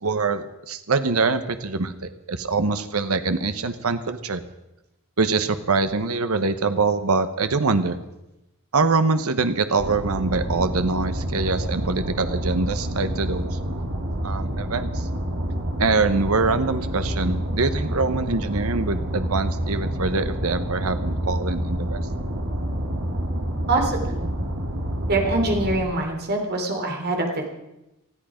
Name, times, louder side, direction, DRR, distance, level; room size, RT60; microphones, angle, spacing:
voice 1, 0.0-4.4 5.2-8.0 8.7-13.5 14.2-15.1 15.8-22.0, right 3 dB, 90° right, 10 dB, 1.0 m, -24 dB
sound 1, 9.8-25.8, equal, 65° right, 2.8 m, -28 dB
voice 2, 23.7-24.4 25.1-27.5, right 2 dB, 50° right, 3 dB, 3.3 m, -24 dB
19.5 x 14.0 x 5.1 m, 0.93 s
head